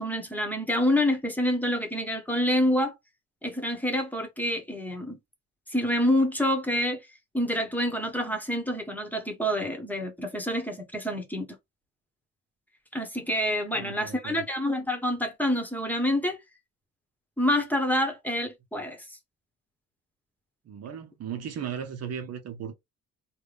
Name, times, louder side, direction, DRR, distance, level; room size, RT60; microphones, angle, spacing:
voice 1, 0.0-2.9 3.4-5.2 5.7-7.0 7.3-11.5 12.9-16.4 17.4-19.0, left 1 dB, 5° left, 1.2 m, -27 dB
voice 2, 13.7-14.4 20.7-22.7, right 8 dB, 55° right, 0.7 m, -36 dB
3.4 x 2.3 x 3.3 m
cardioid pair, 90°, 30 cm